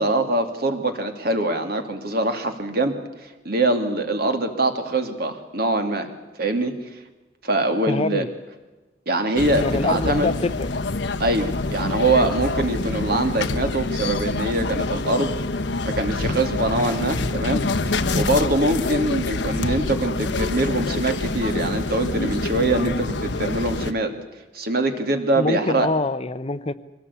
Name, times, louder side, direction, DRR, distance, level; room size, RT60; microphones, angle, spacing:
voice 1, 0.0-3.0 3.4-6.1 6.4-6.7 7.4-8.2 9.1-10.3 11.2-15.3 15.8-24.1 24.5-25.9, right 2 dB, 55° right, 6 dB, 2.5 m, -23 dB
voice 2, 7.9-8.3 9.6-10.7 25.4-26.7, left 2 dB, 35° left, 13 dB, 0.8 m, -24 dB
sound 1, 9.4-23.9, left 2 dB, 75° left, 1.0 m, -26 dB
23.5 x 18.0 x 8.4 m, 1.2 s
head